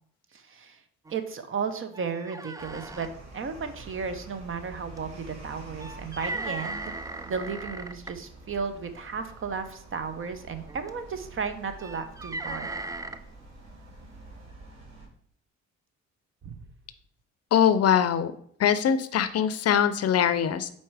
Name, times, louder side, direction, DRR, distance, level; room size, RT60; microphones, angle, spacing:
voice 1, 0.3-0.8 1.1-3.1 3.3-6.9 7.3-12.7 16.4-16.6, right 5 dB, 45° right, 9 dB, 0.8 m, -34 dB
sound 1, 1.1-1.2 1.5-1.6 1.9-3.1 5.0-5.1 5.8-8.1 9.2-9.5 10.7-11.0 11.7-13.2, right 2 dB, 10° right, 0.3 m, -37 dB
sound 2, 2.6-15.1, right 2 dB, 60° right, 2.4 m, -47 dB
voice 2, 17.5-18.3 18.6-20.7, left 9 dB, 55° left, 13 dB, 0.5 m, -22 dB
4.6 x 4.3 x 4.7 m, 0.62 s
cardioid pair, 90°, 30 cm